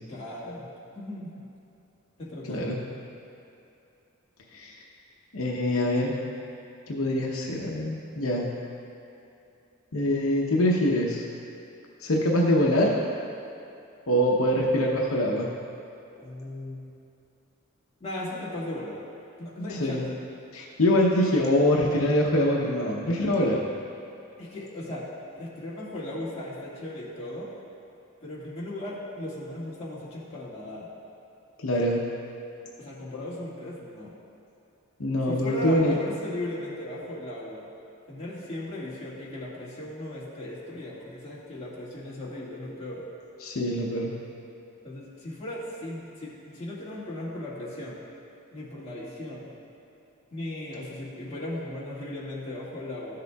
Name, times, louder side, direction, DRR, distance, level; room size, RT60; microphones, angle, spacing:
voice 1, 0.1-0.7 0.9-1.4 2.2-2.7 16.2-16.9 18.0-19.0 19.4-20.1 24.4-25.1 25.4-27.5 28.2-30.9 32.8-34.1 35.3-37.6 38.1-43.0 44.8-48.0 48.5-49.5 50.3-53.2, left 1 dB, 30° left, -8 dB, 1.9 m, -37 dB
voice 2, 5.3-6.1 6.9-8.5 9.9-11.2 12.0-12.9 14.1-15.5 19.7-20.0 20.5-23.6 31.6-32.0 35.0-35.9 43.4-44.1, left 1 dB, 80° left, -2 dB, 0.8 m, -24 dB
14.0 x 6.6 x 2.3 m, 2.7 s
head